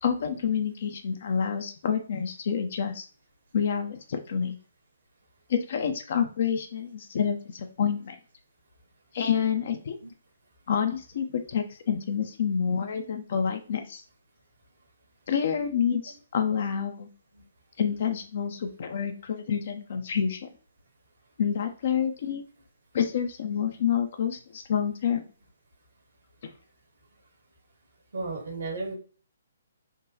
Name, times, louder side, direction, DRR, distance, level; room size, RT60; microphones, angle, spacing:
voice 1, 0.0-3.1 3.5-4.6 5.5-8.2 9.1-9.9 10.7-14.0 15.3-17.1 17.8-20.5 21.4-22.4 22.9-25.2, left 7 dB, 55° left, 6 dB, 0.5 m, -28 dB
voice 2, 28.1-28.9, right 3 dB, 75° right, 1 dB, 1.2 m, -34 dB
3.7 x 2.2 x 2.7 m, 0.39 s
hypercardioid pair, 145°, 0 cm